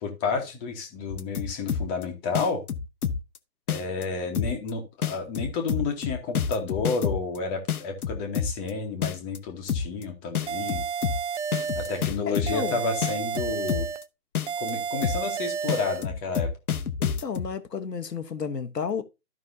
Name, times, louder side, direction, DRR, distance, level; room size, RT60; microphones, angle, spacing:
voice 1, 0.0-2.6 3.7-10.8 11.7-13.9 14.6-16.5, left 4 dB, 15° left, 1.1 m, -31 dB
sound 1, 1.1-2.0 2.3-3.4 3.7-4.0 4.3-4.7 5.0-7.4 7.7-8.7 9.0-9.4 9.7-10.0 10.3-12.7 13.0-14.0 14.3-14.7 15.0-15.4 15.7-17.5, left 7 dB, 65° left, 0.9 m, -28 dB
sound 2, 10.5-12.1 12.5-14.1 14.5-16.1, right 6 dB, 45° right, 0.5 m, -31 dB
voice 2, 12.3-12.8 17.0-19.0, left 6 dB, 80° left, 1.2 m, -32 dB
14.0 x 5.4 x 2.7 m
figure-of-eight pair, 140°, 48 cm